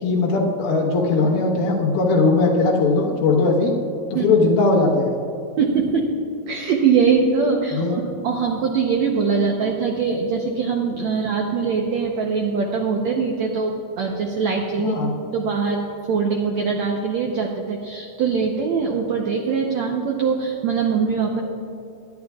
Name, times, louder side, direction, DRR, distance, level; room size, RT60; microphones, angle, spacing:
voice 1, 0.0-3.7 4.1-5.2 7.7-7.9 14.8-15.1, left 3 dB, 80° left, -3 dB, 3.1 m, -19 dB
voice 2, 5.6-6.1 6.5-15.0 15.3-21.4, right 5 dB, 90° right, 1 dB, 1.5 m, -22 dB
22.0 x 10.5 x 2.4 m, 2.8 s
omnidirectional pair, 4.4 m